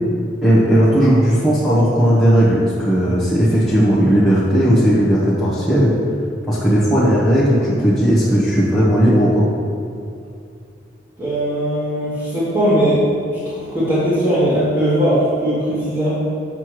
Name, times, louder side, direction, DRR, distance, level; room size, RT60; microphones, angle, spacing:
voice 1, 0.4-5.9 6.5-9.4, equal, ahead, -12 dB, 1.1 m, -15 dB
voice 2, 11.2-13.0 13.3-16.2, equal, 25° right, -13 dB, 1.7 m, -19 dB
7.5 x 6.6 x 3.2 m, 2.5 s
head